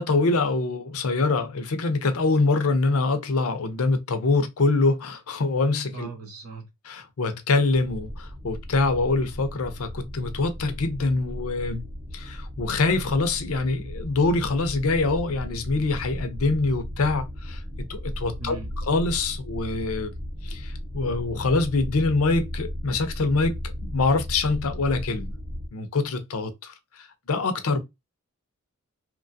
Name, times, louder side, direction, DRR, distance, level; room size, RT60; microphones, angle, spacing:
voice 1, 0.0-6.1 6.9-11.9 12.1-18.6 18.9-20.1 20.4-25.3 25.7-27.8, left 3 dB, 70° left, 0.6 m, -25 dB
voice 2, 5.9-6.7 18.4-18.7, right 3 dB, 85° right, 1.0 m, -38 dB
sound 1, 7.7-25.7, left 1 dB, 35° right, 0.7 m, -36 dB
2.9 x 2.2 x 2.6 m
head